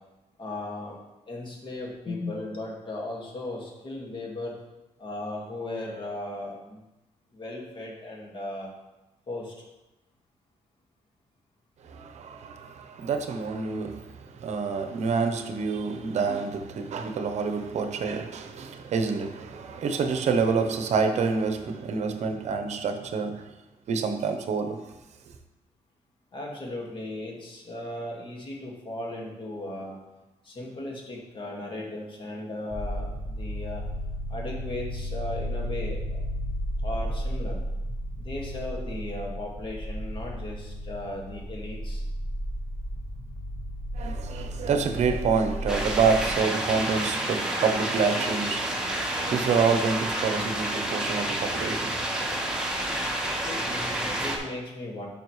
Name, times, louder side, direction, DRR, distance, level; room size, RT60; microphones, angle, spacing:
voice 1, 0.4-1.0 1.3-4.6 5.0-6.8 7.3-8.7 9.3-9.5 26.3-30.0 30.4-33.8 34.3-36.2 36.8-37.6 38.2-42.0 53.4-55.1, left 1 dB, 40° left, 1.9 m, -36 dB
voice 2, 11.8-23.5 23.9-24.8 43.9-52.6, right 5 dB, 65° right, 0.8 m, -27 dB
sound 1, 32.7-46.4, equal, 10° left, 0.8 m, -33 dB
sound 2, 45.7-54.4, right 1 dB, 5° right, 1.4 m, -29 dB
10.0 x 5.6 x 3.2 m
cardioid pair, 115°, 13 cm